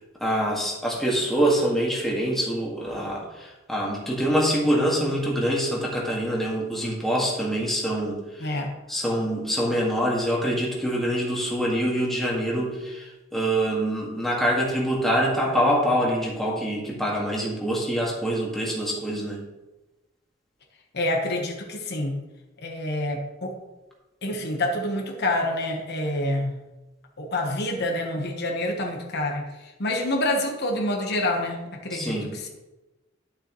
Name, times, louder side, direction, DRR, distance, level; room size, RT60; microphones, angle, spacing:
voice 1, 0.2-8.5 8.9-19.4 31.9-32.3, equal, ahead, -4 dB, 1.8 m, -25 dB
voice 2, 8.4-8.7 20.9-22.2 22.6-23.6 24.2-26.6 27.2-32.2, left 1 dB, 55° left, 1 dB, 1.2 m, -27 dB
11.0 x 7.0 x 3.1 m, 1.1 s
head